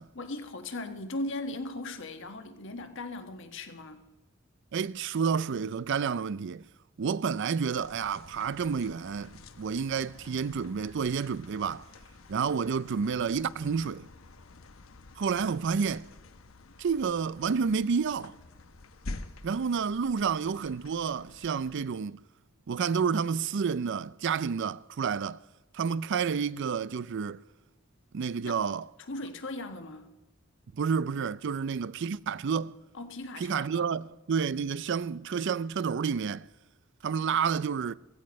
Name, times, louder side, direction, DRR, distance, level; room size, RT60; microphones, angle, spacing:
voice 1, 0.1-4.0 28.4-28.6 29.1-30.1 32.9-33.9, left 2 dB, 65° left, 1.4 m, -38 dB
voice 2, 4.7-6.6 7.0-11.9 12.3-14.1 15.2-16.1 16.8-18.4 19.4-22.2 22.7-25.4 25.7-27.4 28.1-28.9 30.7-32.8 33.4-36.5 37.0-37.9, right 6 dB, 60° right, 0.4 m, -30 dB
sound 1, 7.7-21.8, left 2 dB, 85° left, 1.0 m, -48 dB
15.5 x 15.0 x 5.2 m
head